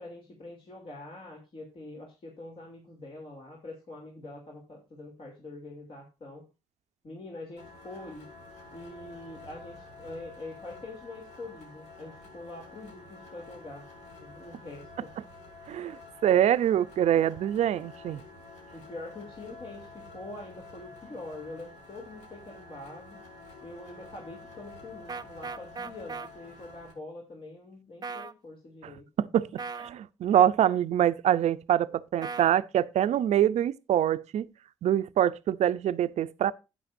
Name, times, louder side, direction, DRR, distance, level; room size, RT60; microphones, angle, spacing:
voice 1, 0.0-6.5 7.0-8.2 8.7-13.9 14.2-15.1 18.7-23.2 23.6-29.1, left 2 dB, 50° left, 3.0 m, -44 dB
sound 1, 7.6-26.9, left 3 dB, 75° left, 5.2 m, -49 dB
voice 2, 15.7-18.2 28.8-28.9 29.3-34.5 34.8-36.5, right 10 dB, 75° right, 0.6 m, -25 dB
sound 2, 25.1-26.3 28.0-28.3 29.6-29.9 32.2-32.5, right 4 dB, 35° right, 0.7 m, -37 dB
12.0 x 9.1 x 2.6 m
cardioid pair, 80°, 12 cm